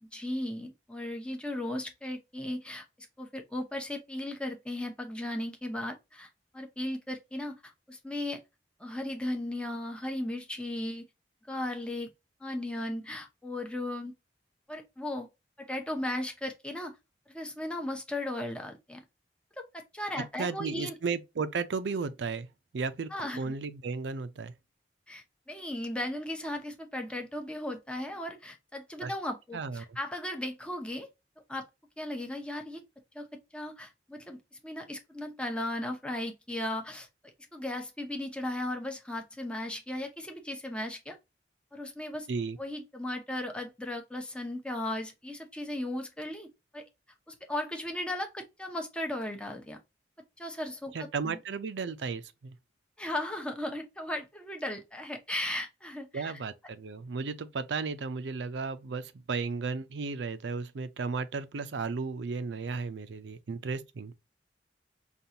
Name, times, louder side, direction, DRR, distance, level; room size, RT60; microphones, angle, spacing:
voice 1, 0.0-2.9 3.2-6.3 6.5-8.4 8.8-11.0 11.5-12.1 12.4-14.1 14.7-15.3 15.6-17.0 17.3-19.0 19.6-20.9 23.1-23.5 25.1-31.1 31.5-31.7 32.0-32.8 33.1-41.2 41.7-42.3 42.6-46.5 46.7-46.9 47.3-49.8 50.4-51.4 53.0-56.4, left 1 dB, 5° left, 0.7 m, -36 dB
voice 2, 20.4-22.5 22.7-23.1 23.4-24.5 29.0-29.1 29.5-30.0 42.3-42.6 50.9-52.6 56.1-64.1, right 4 dB, 80° right, 0.5 m, -34 dB
5.2 x 2.4 x 2.8 m
head